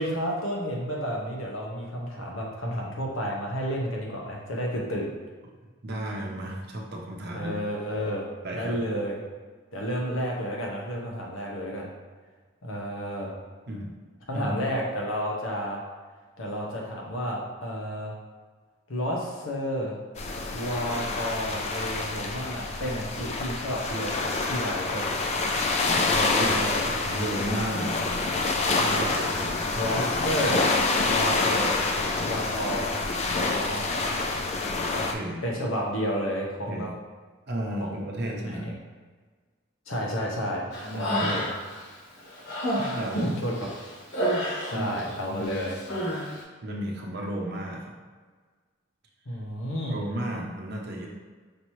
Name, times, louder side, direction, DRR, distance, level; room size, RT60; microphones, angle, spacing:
voice 1, 0.0-5.1 7.3-8.3 8.5-9.2 9.7-11.9 12.6-13.3 14.3-15.8 16.4-18.1 18.9-20.0 20.5-25.1 26.1-26.8 28.8-29.2 29.7-30.7 31.1-31.8 32.2-33.0 33.3-34.0 35.4-36.9 37.8-38.0 38.3-38.7 39.9-41.5 43.1-43.5 44.7-45.8 49.3-50.0, equal, 85° left, -2 dB, 1.0 m, -31 dB
voice 2, 5.8-7.6 8.4-8.8 13.7-13.9 14.3-14.6 26.4-26.5 27.0-28.2 29.6-29.9 34.9-35.4 36.7-36.9 37.5-38.7 40.8-41.4 42.8-43.4 44.7-45.6 46.6-47.9 49.9-51.1, right 1 dB, 55° right, -1 dB, 0.7 m, -33 dB
sound 1, 20.2-35.1, left 3 dB, 35° left, 0.4 m, -27 dB
Human voice, 40.7-41.8 42.2-45.1 45.4-46.3, equal, 55° left, 1.3 m, -30 dB
5.2 x 2.8 x 3.0 m, 1.5 s
head